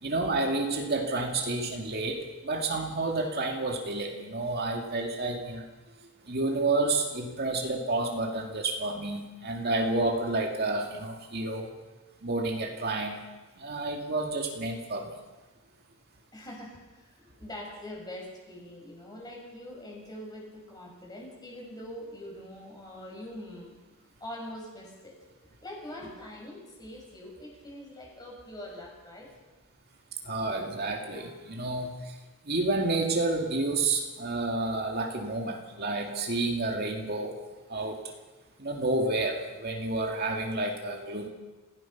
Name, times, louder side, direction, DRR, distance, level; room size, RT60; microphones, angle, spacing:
voice 1, 0.0-5.7 6.2-11.7 12.2-13.2 13.6-15.2 30.2-32.2 32.4-37.4 37.7-38.0 38.6-41.3, right 2 dB, 50° right, 2 dB, 2.3 m, -30 dB
voice 2, 16.3-23.8 24.2-25.2 25.6-29.3, left 1 dB, 20° left, -1 dB, 6.5 m, -43 dB
28.0 x 16.5 x 6.0 m, 1.2 s
head